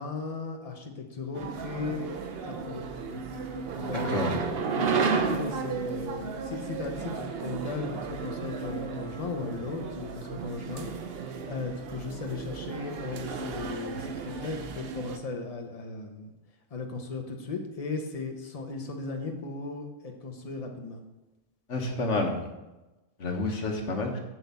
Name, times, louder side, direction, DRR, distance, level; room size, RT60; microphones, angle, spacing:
voice 1, 0.0-2.1 2.4-2.8 3.8-4.1 4.7-10.9 11.4-16.3 16.7-21.0, left 3 dB, 30° left, 4 dB, 0.9 m, -36 dB
sound 1, 1.3-15.2, right 5 dB, 55° right, 0.8 m, -33 dB
voice 2, 3.9-4.4 21.7-22.3 23.2-24.2, left 2 dB, 60° left, 3 dB, 1.5 m, -29 dB
7.8 x 4.4 x 7.0 m, 1.0 s
omnidirectional pair, 1.4 m